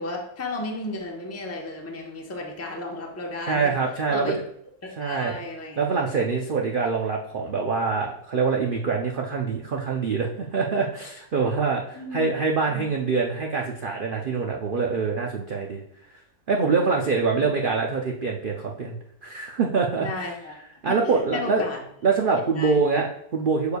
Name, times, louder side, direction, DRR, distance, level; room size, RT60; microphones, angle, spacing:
voice 1, 0.0-3.7 4.1-4.4 5.0-5.8 11.9-12.3 12.7-12.9 20.0-20.6 20.9-21.8 22.5-22.8, left 2 dB, 10° left, 0 dB, 0.7 m, -33 dB
voice 2, 3.5-4.3 5.0-5.4 5.8-15.8 16.5-18.9 19.2-20.1 20.8-21.7 22.0-23.8, right 4 dB, 70° right, 0 dB, 0.5 m, -24 dB
6.8 x 6.5 x 2.3 m, 0.72 s
omnidirectional pair, 1.7 m